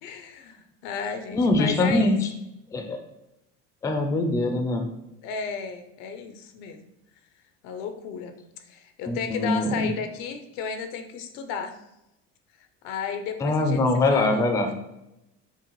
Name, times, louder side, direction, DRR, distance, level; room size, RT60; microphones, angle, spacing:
voice 1, 0.0-2.2 5.2-6.8 7.6-8.3 8.6-11.8 12.8-13.8 14.1-14.4, left 6 dB, 80° left, 7 dB, 0.7 m, -33 dB
voice 2, 1.3-2.2 2.7-3.0 3.8-4.9 9.1-9.9 13.4-14.7, left 2 dB, 10° left, 4 dB, 0.3 m, -23 dB
5.6 x 2.1 x 3.0 m, 0.89 s
cardioid pair, 140°, 30 cm